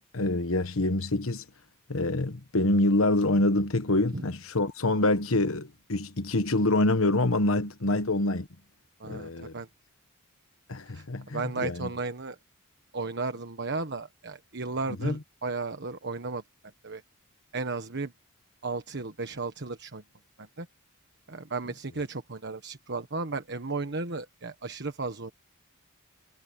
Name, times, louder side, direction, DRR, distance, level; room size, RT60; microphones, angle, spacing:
voice 1, 0.1-1.4 1.9-8.5 9.0-9.5 10.7-11.9 15.0-15.2, left 2 dB, 65° left, 1.3 m, -26 dB
voice 2, 9.0-9.7 10.9-12.4 12.9-16.4 16.8-17.0 17.5-18.1 18.6-20.0 20.4-20.7 21.3-25.3, right 3 dB, 55° right, 1.3 m, -34 dB
head